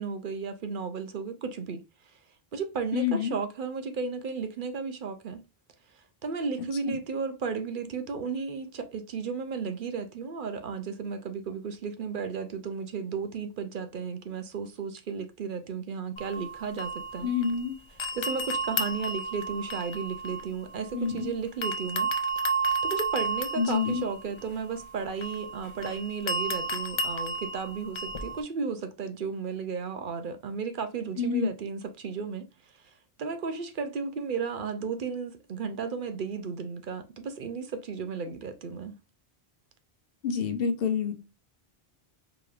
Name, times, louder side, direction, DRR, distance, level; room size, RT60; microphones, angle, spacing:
voice 1, 0.0-1.8 2.1-2.2 2.5-5.4 5.9-17.3 18.1-22.1 22.8-32.9 33.2-39.0, right 5 dB, 60° right, 0.7 m, -34 dB
voice 2, 2.9-3.4 6.9-7.0 17.2-17.7 20.9-21.3 23.6-24.0 31.2-31.5 40.2-41.1, left 6 dB, 70° left, 1.0 m, -27 dB
sound 1, 16.2-17.7 18.0-21.2 21.6-28.4, right 2 dB, 50° left, 0.3 m, -32 dB
4.9 x 3.0 x 2.4 m
omnidirectional pair, 1.0 m